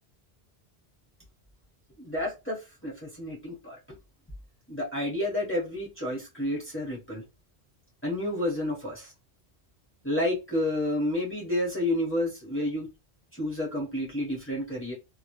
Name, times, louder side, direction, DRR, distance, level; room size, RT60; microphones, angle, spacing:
voice 1, 2.0-3.8 4.7-7.2 8.0-9.1 10.0-12.9 13.4-14.9, left 1 dB, 15° left, -3 dB, 0.8 m, -30 dB
2.1 x 2.0 x 2.9 m, 0.26 s
omnidirectional pair, 1.1 m